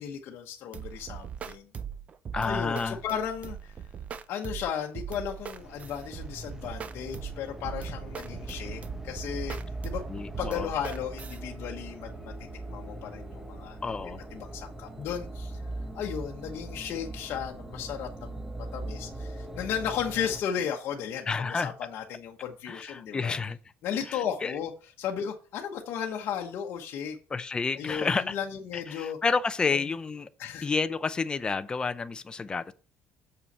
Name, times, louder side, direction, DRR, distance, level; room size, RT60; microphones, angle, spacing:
voice 1, 0.0-1.7 2.4-3.7 4.3-9.6 9.8-10.0 10.4-13.8 14.3-15.6 15.9-18.4 18.7-23.4 23.8-24.7 25.0-27.2 27.7-29.2 30.4-30.7, left 8 dB, 55° left, 1.1 m, -35 dB
sound 1, 0.7-11.4, right 8 dB, 30° right, 0.6 m, -40 dB
voice 2, 2.3-3.0 10.1-10.7 13.8-14.2 21.3-21.7 22.7-23.6 24.1-24.6 27.3-28.4 28.7-30.3 30.6-32.7, left 4 dB, 20° left, 0.5 m, -30 dB
sound 2, 5.6-20.4, right 2 dB, 10° right, 0.9 m, -40 dB
7.0 x 5.6 x 5.4 m
cardioid pair, 155°, 5 cm